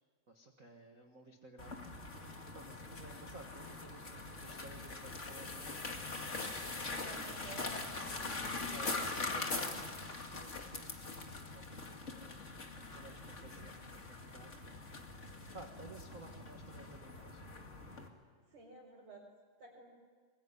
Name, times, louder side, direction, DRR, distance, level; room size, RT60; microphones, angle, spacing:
voice 1, 0.3-1.9 2.5-6.0 8.7-9.0 9.3-10.0 10.3-12.5 12.8-14.6 15.5-17.4, right 2 dB, 75° right, 3 dB, 0.7 m, -55 dB
sound 1, 1.6-18.1, left 3 dB, 30° left, 1.4 m, -43 dB
voice 2, 6.6-7.7 18.5-19.2 19.6-19.9, right 3 dB, 45° right, -5 dB, 5.7 m, -54 dB
24.0 x 22.0 x 9.8 m, 1.5 s
omnidirectional pair, 4.4 m